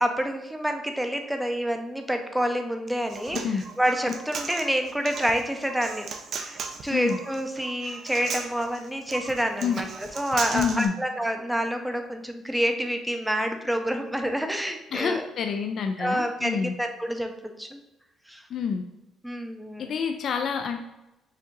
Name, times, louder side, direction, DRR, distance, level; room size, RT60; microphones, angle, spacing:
voice 1, 0.0-3.4 3.8-6.1 6.4-15.3 16.0-17.3 17.6-17.8 18.3-18.4 19.2-19.9, equal, 5° right, 5 dB, 0.5 m, -28 dB
Human voice, 2.9-10.9, right 5 dB, 55° right, 0.5 m, -36 dB
voice 2, 10.5-10.9 14.9-16.7 18.5-18.8 19.8-20.8, left 6 dB, 55° left, 6 dB, 0.4 m, -27 dB
5.1 x 2.7 x 3.9 m, 0.93 s
cardioid pair, 125°, 0 cm